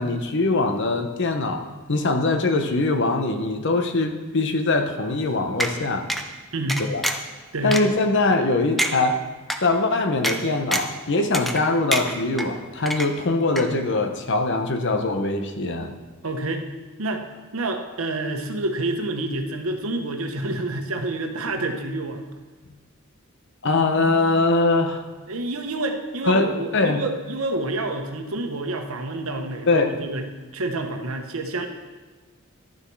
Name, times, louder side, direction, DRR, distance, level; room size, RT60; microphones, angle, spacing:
voice 1, 0.0-6.1 6.8-7.1 7.6-9.2 9.6-15.9 23.6-25.0 26.3-26.5 26.7-27.0 29.7-29.9, left 2 dB, 60° left, 6 dB, 0.9 m, -22 dB
sound 1, 5.6-5.7 6.1-6.2 6.7-7.3 7.7-7.8 8.3-8.4 8.8-8.9 9.5-9.6 10.2-10.4 10.7-11.0 11.3-11.6 11.9-12.5 12.9-13.3 13.6-13.7, right 1 dB, ahead, 0.6 m, -25 dB
voice 2, 16.2-16.6 17.0-17.2 17.5-22.2 25.3-30.3 30.5-31.7, right 2 dB, 85° right, 5 dB, 1.0 m, -28 dB
12.0 x 7.0 x 4.7 m, 1.3 s
head